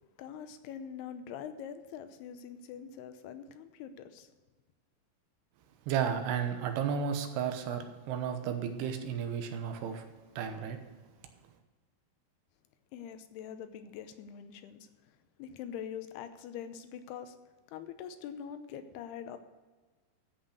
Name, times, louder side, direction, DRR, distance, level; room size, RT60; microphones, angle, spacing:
voice 1, 0.2-4.3 12.9-17.4 17.7-19.4, left 8 dB, 80° left, 10 dB, 2.8 m, -44 dB
voice 2, 5.9-10.1 10.4-10.8, right 7 dB, 80° right, 7 dB, 3.1 m, -33 dB
13.5 x 5.8 x 6.5 m, 1.3 s
omnidirectional pair, 4.7 m